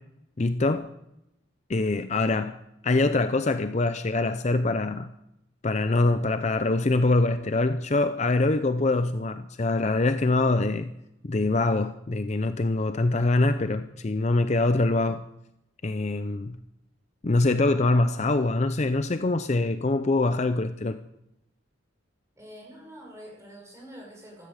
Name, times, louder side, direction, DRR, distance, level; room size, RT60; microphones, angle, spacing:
voice 1, 0.4-0.9 1.7-2.6 2.8-5.1 5.6-10.9 11.2-15.2 15.8-16.6 17.2-21.0, left 2 dB, 35° left, 0.5 m, -24 dB
voice 2, 22.4-24.5, equal, 15° right, 5.5 m, -46 dB
16.0 x 13.5 x 6.5 m
head